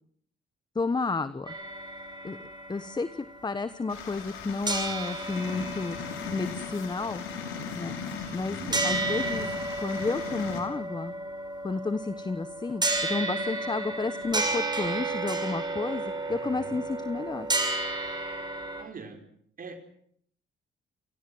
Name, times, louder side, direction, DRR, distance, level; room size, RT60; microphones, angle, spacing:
voice 1, 0.7-1.5 2.2-2.4 2.7-7.2 7.7-8.0 8.3-9.5 9.8-11.1 11.6-16.0 16.3-17.5, left 3 dB, 20° left, 13 dB, 1.2 m, -31 dB
sound 1, 1.5-4.4 4.7-18.8, right 2 dB, 20° right, 6.6 m, -33 dB
sound 2, 3.9-10.6, left 6 dB, 90° left, 6.1 m, -38 dB
voice 2, 8.1-9.0 16.3-16.8 18.7-19.2 19.6-19.8, right 4 dB, 45° right, 5 dB, 4.8 m, -43 dB
28.5 x 18.5 x 7.9 m, 0.64 s
cardioid pair, 90°, 20 cm